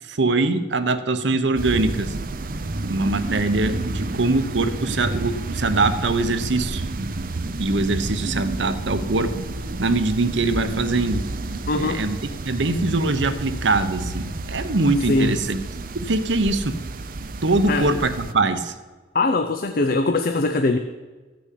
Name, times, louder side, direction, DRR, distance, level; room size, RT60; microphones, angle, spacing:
voice 1, 0.1-2.1 2.9-6.8 7.6-9.3 9.8-11.2 11.8-12.2 12.4-15.6 16.0-16.7 17.4-18.7, right 2 dB, 80° right, 9 dB, 1.0 m, -22 dB
sound 1, 1.5-18.3, right 2 dB, 50° right, 0.7 m, -30 dB
voice 2, 11.7-12.0 15.1-15.4 17.7-18.1 19.1-20.8, left 2 dB, 50° left, 6 dB, 0.6 m, -22 dB
14.0 x 6.2 x 8.4 m, 1.3 s
head